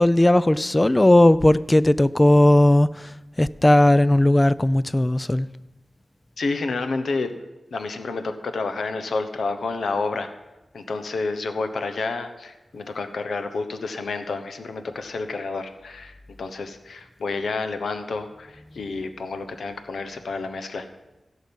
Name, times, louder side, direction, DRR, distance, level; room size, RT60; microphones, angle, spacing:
voice 1, 0.0-2.9 3.4-5.5, left 1 dB, 20° left, 17 dB, 0.4 m, -17 dB
voice 2, 6.4-7.3 7.7-10.3 10.7-20.9, left 3 dB, 85° left, 8 dB, 1.0 m, -29 dB
16.0 x 6.4 x 5.3 m, 1.0 s
cardioid pair, 65°, 0 cm